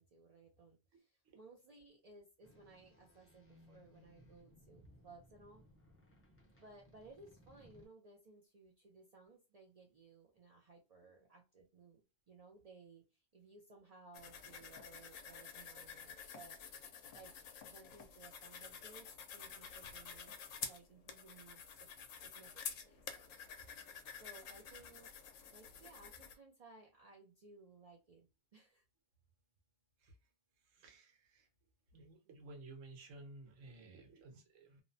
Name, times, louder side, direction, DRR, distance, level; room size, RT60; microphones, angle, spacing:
voice 1, 0.0-5.6 6.6-16.6 17.1-21.9 22.2-23.3 23.6-23.9 24.2-25.1 25.5-28.8, right 3 dB, 75° right, 0 dB, 0.3 m, -60 dB
sound 1, 2.4-7.9, left 1 dB, 15° left, 0.4 m, -65 dB
sound 2, 14.1-26.4, left 7 dB, 85° left, 0.9 m, -50 dB
voice 2, 30.7-31.5 31.9-34.8, right 2 dB, 90° right, 2 dB, 1.2 m, -55 dB
2.8 x 2.0 x 2.5 m, 0.29 s
omnidirectional pair, 1.3 m